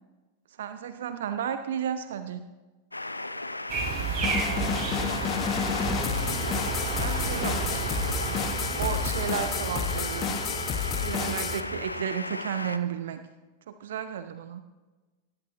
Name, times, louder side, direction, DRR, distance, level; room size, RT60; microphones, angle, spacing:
voice 1, 0.6-2.4 7.0-8.4 8.8-10.4 11.0-13.2 13.7-14.6, right 8 dB, 60° right, 10 dB, 0.8 m, -33 dB
sound 1, 2.9-12.8, left 2 dB, 85° left, 0.6 m, -35 dB
sound 2, 3.7-11.9, right 5 dB, 35° right, 6.0 m, -32 dB
sound 3, 4.2-11.6, left 8 dB, 30° left, 1.0 m, -31 dB
voice 2, 4.6-5.2 6.4-7.4, right 2 dB, 15° right, 4 dB, 2.0 m, -47 dB
18.5 x 17.0 x 3.0 m, 1.2 s
figure-of-eight pair, 90°, 0 cm